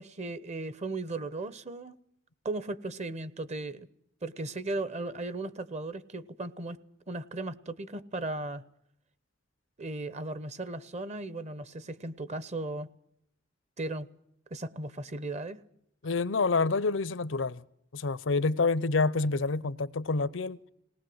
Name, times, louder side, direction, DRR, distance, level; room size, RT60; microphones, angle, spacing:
voice 1, 0.0-2.0 2.4-3.9 4.2-6.8 7.1-8.6 9.8-12.9 13.8-14.1 14.5-15.6, right 2 dB, 35° right, 1.0 m, -36 dB
voice 2, 16.0-17.6 17.9-20.6, left 3 dB, 70° left, 0.7 m, -28 dB
20.0 x 18.5 x 7.8 m
head